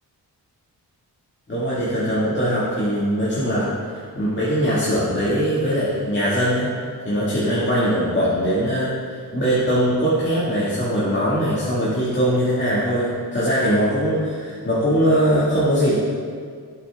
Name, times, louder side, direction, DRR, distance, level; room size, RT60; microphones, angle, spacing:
voice 1, 1.5-6.7 7.0-15.9, equal, 25° left, -10 dB, 2.0 m, -21 dB
8.3 x 5.9 x 3.5 m, 2.1 s
cardioid pair, 65°, 40 cm